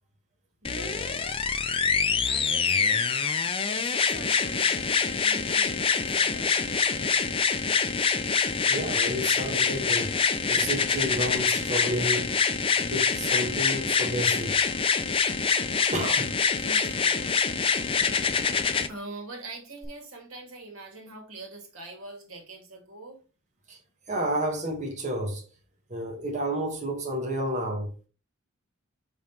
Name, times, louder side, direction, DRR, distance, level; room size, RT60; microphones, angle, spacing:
sound 1, 0.6-18.9 19.8-19.9, left 5 dB, 25° left, 0.5 m, -25 dB
voice 1, 0.6-1.3 2.2-3.1 3.6-7.2 16.6-17.6 18.9-23.2, right 2 dB, 85° right, 2.2 m, -44 dB
voice 2, 8.7-10.2 10.5-12.3 12.8-14.6 15.9-16.3 17.7-17.8 18.5-18.6 23.7-23.8 24.1-25.4 25.9-27.9, right 1 dB, 35° right, 1.4 m, -31 dB
6.0 x 5.4 x 3.0 m
head